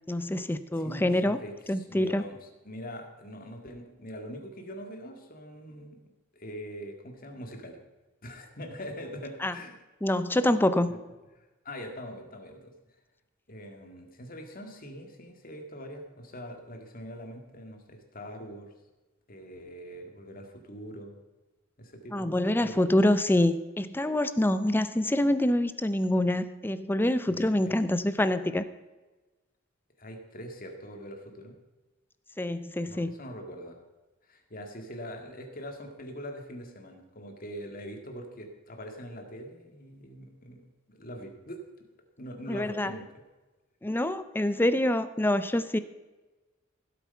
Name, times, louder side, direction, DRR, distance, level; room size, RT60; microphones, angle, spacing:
voice 1, 0.1-1.4 1.7-2.2 9.4-9.5 10.0-10.9 22.1-28.6 32.4-33.1 42.5-42.9 43.8-45.8, left 1 dB, 10° left, 12 dB, 0.5 m, -26 dB
voice 2, 0.8-6.0 6.3-7.8 8.2-9.8 10.9-11.0 11.4-12.7 13.5-18.7 19.3-21.2 21.8-22.9 27.3-27.8 30.0-31.6 32.9-33.8 34.3-41.6 42.2-43.2, equal, 45° left, 4 dB, 2.0 m, -43 dB
16.0 x 8.3 x 5.6 m, 1.2 s
head